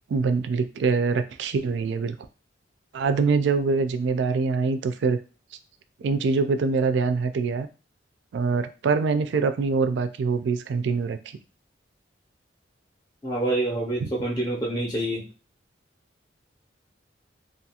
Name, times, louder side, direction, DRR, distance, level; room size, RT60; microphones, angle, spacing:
voice 1, 0.1-2.2 2.9-5.2 6.0-7.7 8.3-11.4 14.0-14.1, right 4 dB, 70° right, 9 dB, 0.3 m, -24 dB
voice 2, 13.2-15.2, right 1 dB, 20° left, -2 dB, 0.5 m, -27 dB
2.5 x 2.4 x 2.8 m, 0.34 s
head